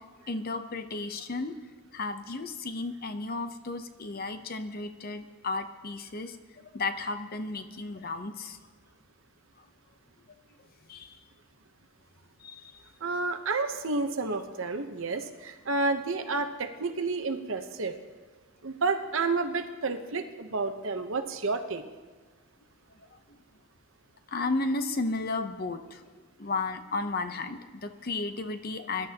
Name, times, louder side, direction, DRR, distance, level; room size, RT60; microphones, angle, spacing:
voice 1, 0.3-1.5 1.9-6.4 6.7-8.6 10.9-11.2 12.4-12.7 23.1-23.2 24.3-26.0 26.4-29.1, left 3 dB, 40° left, 9 dB, 0.7 m, -33 dB
voice 2, 13.0-18.0 18.6-21.8, right 3 dB, 60° right, 7 dB, 0.9 m, -30 dB
22.5 x 11.5 x 2.9 m, 1.3 s
head